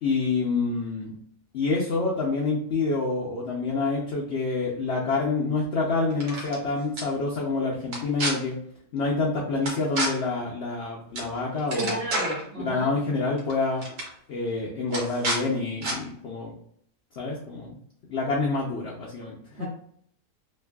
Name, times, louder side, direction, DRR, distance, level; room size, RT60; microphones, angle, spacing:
voice 1, 0.0-1.1 1.5-8.6 8.9-12.0 12.6-13.8 14.3-16.5 17.2-17.8 18.1-19.7, left 3 dB, 75° left, -3 dB, 0.6 m, -27 dB
sound 1, 6.1-6.6 7.0-7.1 7.9-8.3 9.7-10.1 11.2-11.3 11.6-12.4 13.4-13.5 13.8-14.1 14.9-15.4 15.8-16.0, right 1 dB, 70° right, 1.3 m, -29 dB
voice 2, 11.7-12.9 19.6-19.7, right 2 dB, 40° right, -5 dB, 0.9 m, -32 dB
3.0 x 2.6 x 2.2 m, 0.65 s
omnidirectional pair, 1.7 m